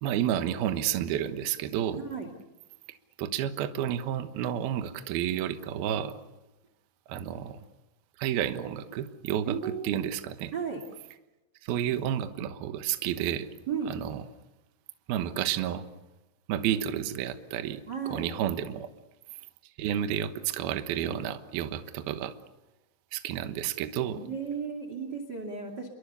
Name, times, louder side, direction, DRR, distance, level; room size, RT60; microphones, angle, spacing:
voice 1, 0.0-2.0 3.2-6.2 7.1-7.6 8.2-10.5 11.6-13.5 13.9-14.2 15.1-15.8 16.5-17.8 18.1-18.9 19.8-22.3 23.1-24.2, right 10 dB, 65° right, 8 dB, 2.7 m, -31 dB
voice 2, 1.9-2.3 9.4-9.9 10.5-10.8 13.7-13.9 17.9-18.3 24.1-25.9, right 6 dB, 30° right, 5 dB, 2.1 m, -34 dB
29.5 x 23.0 x 6.8 m, 1.0 s
omnidirectional pair, 5.4 m